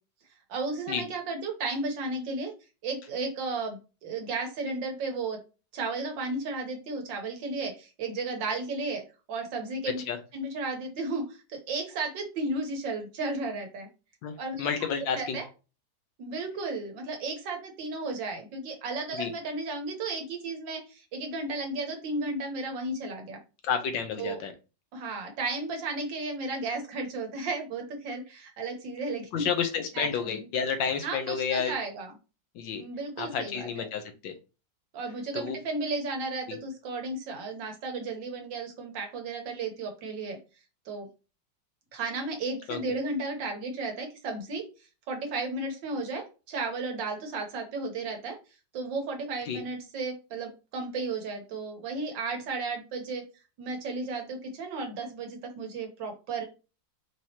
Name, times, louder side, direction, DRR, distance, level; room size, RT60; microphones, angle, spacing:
voice 1, 0.5-2.5 2.8-5.4 5.7-9.0 9.3-10.0 10.3-13.9 14.4-14.7 15.1-15.4 16.2-23.4 24.2-24.4 24.9-29.5 29.9-30.4 31.0-32.1 32.8-33.5 33.8-33.9 34.9-40.4 40.9-41.1 41.9-44.6 45.1-48.4 48.7-53.2 53.6-56.4, right 3 dB, 75° right, 3 dB, 1.7 m, -34 dB
voice 2, 14.2-15.4 19.1-19.3 23.6-24.5 29.3-31.7 32.5-32.8 33.2-34.3 35.3-35.6 36.5-36.6 42.7-42.8 49.4-49.6, left 7 dB, 80° left, 7 dB, 1.4 m, -30 dB
4.7 x 2.9 x 2.8 m, 0.31 s
omnidirectional pair, 2.0 m